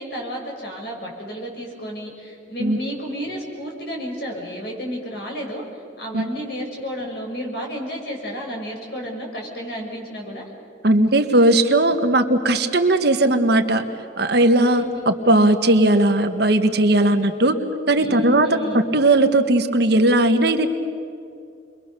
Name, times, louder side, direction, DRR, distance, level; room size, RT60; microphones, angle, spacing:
voice 1, 0.0-5.6 6.0-10.5 14.7-14.9 18.0-18.8, equal, 55° left, 0 dB, 6.3 m, -32 dB
voice 2, 10.8-13.8 14.2-17.6 17.9-18.5 18.9-20.7, right 2 dB, 55° right, 6 dB, 1.5 m, -17 dB
29.5 x 22.5 x 6.8 m, 2.4 s
head